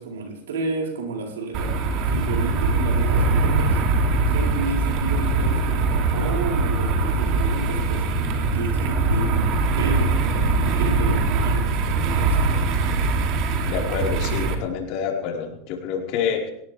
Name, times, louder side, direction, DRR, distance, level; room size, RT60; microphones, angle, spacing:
voice 1, 0.0-1.8 2.0-3.8 4.3-9.4 9.8-12.4, right 3 dB, 85° right, 0 dB, 4.5 m, -31 dB
sound 1, 1.5-14.6, right 3 dB, 55° right, 3.1 m, -22 dB
voice 2, 13.6-16.5, left 7 dB, 55° left, 0 dB, 4.8 m, -27 dB
19.5 x 18.5 x 3.6 m, 0.74 s
hypercardioid pair, 105°, 0 cm